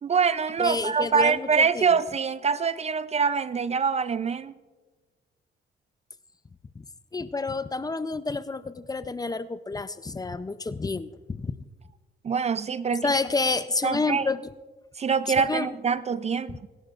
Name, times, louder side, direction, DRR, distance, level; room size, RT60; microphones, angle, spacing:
voice 1, 0.0-4.6 12.2-13.1 13.8-14.3 15.0-16.7, right 6 dB, 35° right, 0.4 m, -25 dB
voice 2, 0.6-1.8 6.8-6.9 7.1-11.6 13.0-14.5 15.4-15.7 16.5-16.6, left 3 dB, 20° left, 0.5 m, -29 dB
27.5 x 11.5 x 2.5 m
cardioid pair, 90°, 20 cm